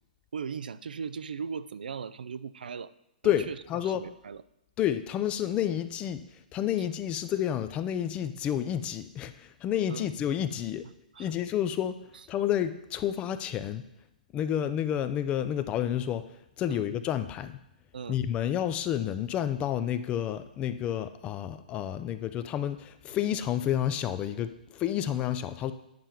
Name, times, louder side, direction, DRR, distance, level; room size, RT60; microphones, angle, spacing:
voice 1, 0.3-2.9 3.2-4.4 9.9-10.1 11.1-11.3 16.7-16.9 17.9-18.2, right 6 dB, 75° right, 15 dB, 0.4 m, -38 dB
voice 2, 3.2-4.0 4.8-6.2 6.5-10.9 11.2-12.0 12.3-13.9 14.3-16.3 16.6-17.6 18.1-25.7, left 10 dB, 25° left, 12 dB, 0.5 m, -30 dB
9.3 x 5.5 x 4.5 m, 0.84 s
hypercardioid pair, 130°, 5 cm